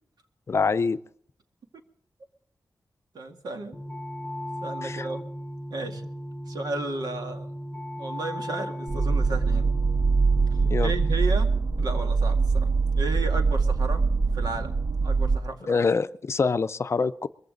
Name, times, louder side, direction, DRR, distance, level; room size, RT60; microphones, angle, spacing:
voice 1, 0.5-1.0 4.8-5.1 10.7-10.9 15.7-17.3, left 4 dB, 40° left, 12 dB, 0.5 m, -25 dB
voice 2, 3.1-3.8 4.6-5.3 5.7-6.1 6.5-7.5 8.0-9.7 10.8-11.5 11.8-12.7 12.9-14.0 14.3-14.7 15.0-15.8, right 2 dB, 80° right, 4 dB, 2.1 m, -33 dB
sound 1, 3.7-11.1, equal, 5° left, 1.8 m, -36 dB
sound 2, 8.9-15.4, right 4 dB, 40° right, 0.5 m, -23 dB
22.0 x 15.0 x 3.9 m, 0.64 s
wide cardioid pair, 160°, 7 cm